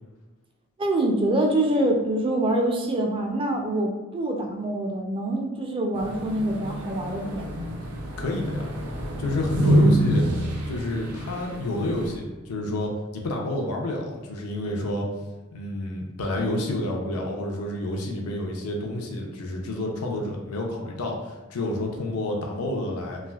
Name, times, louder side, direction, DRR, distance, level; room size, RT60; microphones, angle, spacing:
voice 1, 0.8-7.8, right 1 dB, 25° right, 2 dB, 0.4 m, -25 dB
sound 1, 5.9-12.2, right 1 dB, 85° right, 0.6 m, -26 dB
voice 2, 8.2-8.7 9.2-10.3 10.7-15.1 15.5-23.2, left 1 dB, 85° left, 0 dB, 0.5 m, -29 dB
3.3 x 2.4 x 2.3 m, 1.2 s
head